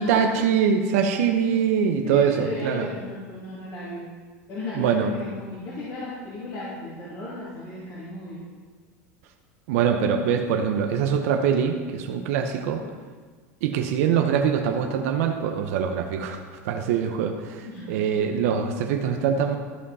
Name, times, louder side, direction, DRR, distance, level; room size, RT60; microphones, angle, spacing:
voice 1, 0.0-2.9 4.7-5.1 9.7-12.8 13.6-19.6, right 7 dB, 70° right, 4 dB, 0.8 m, -23 dB
voice 2, 2.0-4.0 4.5-8.4 17.6-17.9, left 2 dB, 50° left, -8 dB, 2.7 m, -35 dB
13.0 x 5.4 x 4.2 m, 1.5 s
hypercardioid pair, 95°, 8 cm